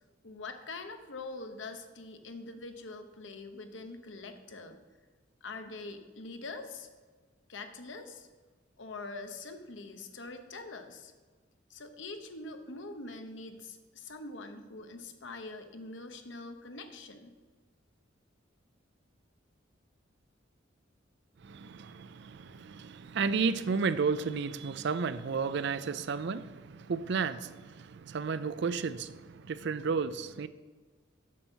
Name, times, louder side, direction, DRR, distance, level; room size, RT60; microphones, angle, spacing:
voice 1, 0.2-4.8 5.4-6.9 7.5-8.3 8.8-11.1 11.7-17.4, left 3 dB, 70° left, 1.0 m, -44 dB
voice 2, 21.4-30.5, right 5 dB, 60° right, 0.4 m, -32 dB
7.4 x 6.9 x 6.3 m
head